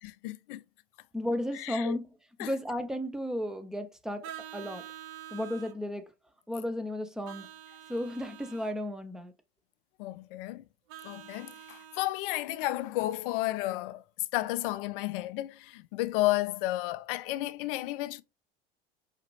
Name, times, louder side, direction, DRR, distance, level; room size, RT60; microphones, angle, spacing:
voice 1, 0.0-0.6 1.5-2.0 2.4-2.5 10.0-10.6 11.0-14.0 14.3-18.2, left 17 dB, 65° left, 0.5 m, -32 dB
voice 2, 1.1-2.1 2.4-4.9 5.3-6.1 6.5-7.5 7.9-9.3, left 1 dB, ahead, 0.5 m, -34 dB
Vehicle horn car horn honking, 4.2-5.8 7.2-8.7 10.9-12.1, right 11 dB, 55° right, 0.9 m, -46 dB
5.0 x 2.4 x 3.1 m
hypercardioid pair, 80°, 30 cm